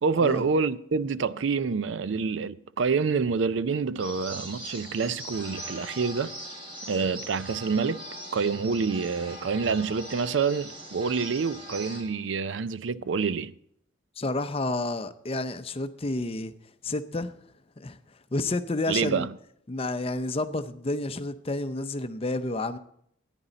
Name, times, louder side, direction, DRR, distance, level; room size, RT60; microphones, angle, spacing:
voice 1, 0.0-6.3 6.9-8.0 8.3-13.5 18.9-19.3, right 5 dB, 75° right, 0.4 m, -27 dB
sound 1, 4.0-12.0, equal, 30° right, 3.0 m, -41 dB
voice 2, 14.2-16.5 16.8-17.3 17.8-18.0 18.3-19.3 19.7-22.8, left 2 dB, 30° left, 0.6 m, -30 dB
14.0 x 10.0 x 3.9 m
head